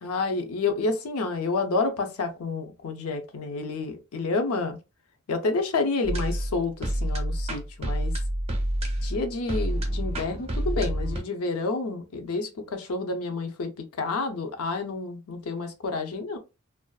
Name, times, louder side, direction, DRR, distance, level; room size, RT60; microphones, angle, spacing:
voice 1, 0.0-4.8 5.3-8.1 9.0-13.7 14.0-16.4, left 3 dB, 80° left, 0.5 m, -29 dB
sound 1, 6.0-11.2, right 1 dB, 30° right, 0.5 m, -28 dB
2.5 x 2.3 x 2.2 m
head